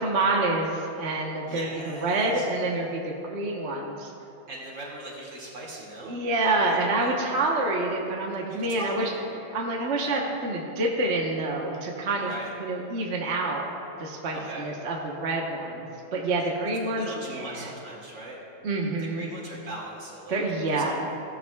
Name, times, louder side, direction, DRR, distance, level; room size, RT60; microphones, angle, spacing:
voice 1, 0.0-4.1 6.0-9.1 9.5-12.3 12.6-13.7 14.0-17.7 18.6-19.3 20.3-21.0, right 2 dB, 40° right, -1 dB, 1.1 m, -27 dB
voice 2, 1.4-2.5 4.5-7.1 8.5-9.2 10.0-10.3 12.2-12.5 14.3-14.7 17.0-18.4 19.0-20.8, right 1 dB, 60° right, -4 dB, 3.0 m, -40 dB
17.0 x 12.5 x 2.3 m, 2.8 s
omnidirectional pair, 2.3 m